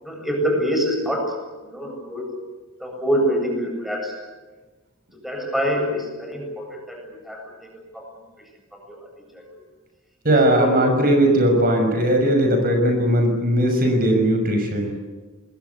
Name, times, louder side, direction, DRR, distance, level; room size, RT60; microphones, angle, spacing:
voice 1, 0.0-1.4 1.6-2.4 2.8-4.2 5.1-8.1 8.7-9.5 10.4-10.8, equal, ahead, 2 dB, 7.7 m, -26 dB
voice 2, 10.2-14.9, right 1 dB, 45° right, 4 dB, 6.1 m, -18 dB
27.0 x 22.0 x 8.4 m, 1.2 s
head